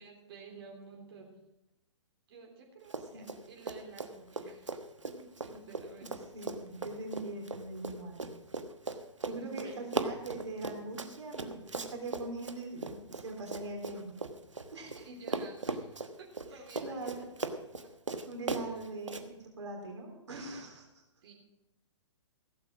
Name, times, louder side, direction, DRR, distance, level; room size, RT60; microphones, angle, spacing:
voice 1, 0.0-1.4 2.3-6.1 9.2-9.8 15.0-17.3 18.7-18.8 21.2-21.3, right 4 dB, 55° right, 0 dB, 3.4 m, -52 dB
Run, 2.8-3.4 3.6-15.0 15.3-19.2, right 3 dB, 90° right, 1.2 m, -38 dB
voice 2, 6.3-8.3 9.2-14.2 14.7-15.1 16.5-17.2 18.3-21.0, right 2 dB, 70° right, 1 dB, 3.7 m, -42 dB
16.0 x 8.4 x 5.9 m, 0.96 s
figure-of-eight pair, 125°, 15 cm